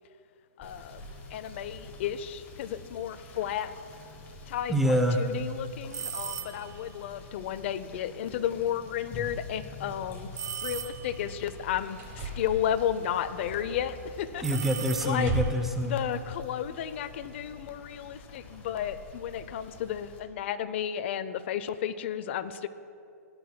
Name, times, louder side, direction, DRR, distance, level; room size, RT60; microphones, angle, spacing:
voice 1, 0.6-1.0 1.3-3.7 4.5-10.3 10.6-14.4 15.0-15.3 15.8-22.7, left 10 dB, 45° left, 12 dB, 0.5 m, -33 dB
Rain / Motor vehicle (road), 0.6-20.2, left 2 dB, 20° left, 1.3 m, -47 dB
voice 2, 4.7-5.2 14.4-16.0, equal, 5° right, 3 dB, 0.5 m, -26 dB
sound 1, 5.9-6.8 10.4-11.3 14.4-15.6, right 8 dB, 70° right, 0.8 m, -37 dB
sound 2, 11.5-11.6 12.0-13.9 14.4-14.7 15.0-15.8 16.9-17.0, right 1 dB, 25° right, 1.6 m, -37 dB
17.5 x 10.0 x 2.2 m, 2.5 s
hypercardioid pair, 155°, 9 cm